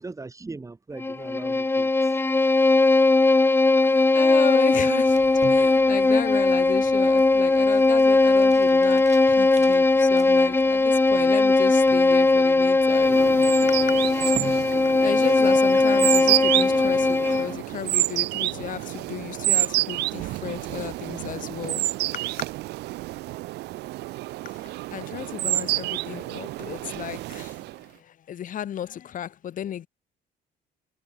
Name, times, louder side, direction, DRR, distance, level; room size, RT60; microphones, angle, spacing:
voice 1, 0.0-2.2, right 3 dB, 20° right, 4.1 m, -40 dB
Bowed string instrument, 1.0-17.6, left 3 dB, 15° left, 0.9 m, -19 dB
voice 2, 3.8-5.2 5.5-13.2 14.9-21.8 24.9-27.5 28.3-29.9, left 10 dB, 50° left, 1.9 m, -34 dB
sound 1, 4.8-15.4, right 7 dB, 45° right, 7.4 m, -44 dB
sound 2, 12.9-27.8, right 18 dB, 85° right, 3.6 m, -29 dB
cardioid pair, 110°, 17 cm